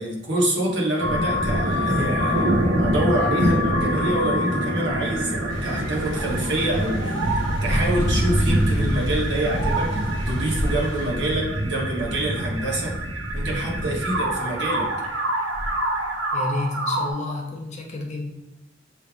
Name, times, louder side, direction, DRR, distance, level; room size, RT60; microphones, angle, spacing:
voice 1, 0.0-12.9 13.3-14.9, right 1 dB, 60° right, -3 dB, 1.3 m, -27 dB
sound 1, 1.0-17.1, equal, 85° right, 0.9 m, -24 dB
sound 2, 5.5-11.1, left 1 dB, 65° left, 1.1 m, -39 dB
voice 2, 16.3-18.3, left 2 dB, 35° left, 0 dB, 0.7 m, -30 dB
6.5 x 3.3 x 2.4 m, 0.99 s
head